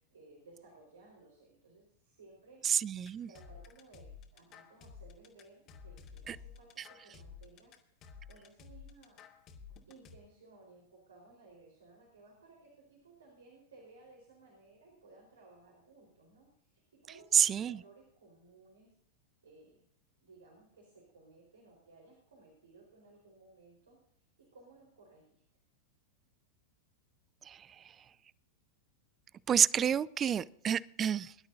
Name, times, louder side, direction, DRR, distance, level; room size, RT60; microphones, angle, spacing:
voice 1, 0.0-2.9 3.3-7.8 8.2-9.2 9.9-19.0 19.4-19.8 20.2-25.4, right 3 dB, 70° right, 0 dB, 4.5 m, -59 dB
voice 2, 2.6-3.3 6.3-6.4 17.3-17.8 27.4-28.0 29.5-31.3, right 8 dB, 25° right, 23 dB, 0.4 m, -29 dB
sound 1, 3.1-10.2, left 6 dB, 35° left, 2.4 m, -52 dB
23.5 x 12.0 x 2.7 m, 0.74 s
figure-of-eight pair, 90°, 0 cm